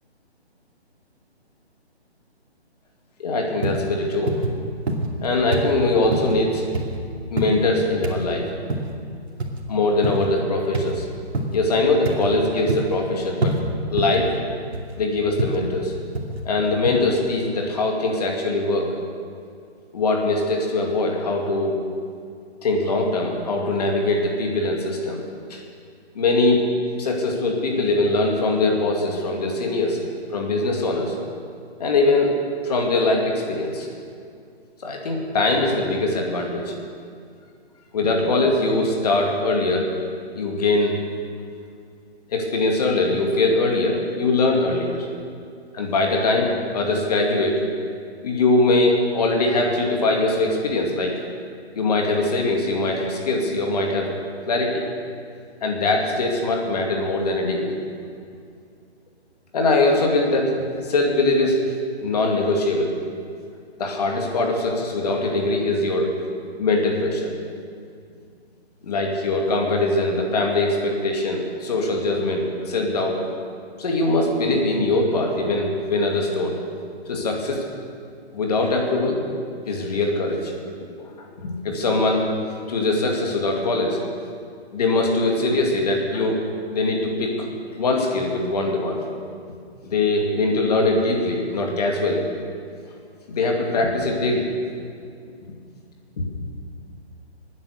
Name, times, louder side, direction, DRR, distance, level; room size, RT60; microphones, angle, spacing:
voice 1, 3.2-4.4 5.2-6.6 7.3-8.5 9.7-11.0 11.5-13.6 13.9-14.3 15.0-15.9 16.4-18.9 19.9-21.8 22.6-25.2 25.5-25.6 26.1-26.6 27.0-30.0 30.3-31.2 31.8-32.4 32.6-33.9 34.8-36.7 37.9-39.9 40.3-41.0 42.3-45.1 45.7-47.6 48.2-51.2 51.8-54.1 54.5-54.9 55.6-57.8 59.5-60.6 60.8-61.6 62.0-62.9 63.8-66.2 66.6-67.3 68.8-73.2 73.8-76.6 77.1-77.6 78.3-79.2 79.7-80.5 81.0-82.3 82.7-84.0 84.7-87.5 87.8-89.0 89.8-92.3 93.3-94.5 95.5-95.6 96.2-96.3, left 2 dB, 35° left, 1 dB, 2.4 m, -22 dB
sound 1, 3.6-3.9 4.3-4.6 4.9-5.3 5.5-5.7 6.1-6.3 6.7-7.0 7.4-7.6 8.0-8.2 8.7-8.9 9.4-9.6 10.0-10.3 10.7-10.9 11.3-11.6 12.1-12.3 12.7-13.0 13.4-13.6 14.0-14.2 14.7-15.0 15.4-15.6 16.1-16.4 16.9-17.0, right 2 dB, 70° right, 2.5 m, -25 dB
19.5 x 9.7 x 6.6 m, 2.3 s
hypercardioid pair, 170°, 33 cm